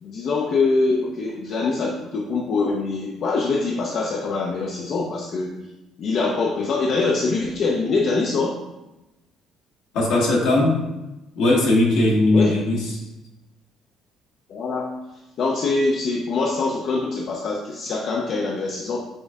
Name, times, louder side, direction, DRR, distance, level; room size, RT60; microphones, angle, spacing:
voice 1, 0.0-5.6 6.0-8.6 12.3-12.6 14.5-14.9 15.4-19.0, left 3 dB, 60° left, 0 dB, 0.5 m, -24 dB
voice 2, 9.9-10.8 11.3-13.0, left 2 dB, 80° left, -2 dB, 1.3 m, -19 dB
5.9 x 2.6 x 3.5 m, 0.99 s
supercardioid pair, 75°, 0 cm